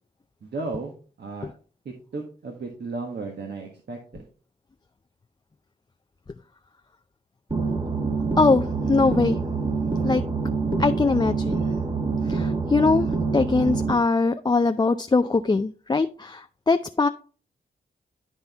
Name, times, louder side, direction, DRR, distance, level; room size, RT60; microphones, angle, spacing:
voice 1, 0.4-0.9 1.2-1.5 1.8-4.3, right 3 dB, 60° right, 2 dB, 1.4 m, -34 dB
sound 1, 7.5-13.9, right 4 dB, 25° right, 1.4 m, -26 dB
voice 2, 8.4-9.4 10.0-10.2 10.7-11.6 12.2-17.1, left 3 dB, 20° left, 8 dB, 0.5 m, -22 dB
11.5 x 4.2 x 3.5 m, 0.40 s
supercardioid pair, 45°, 19 cm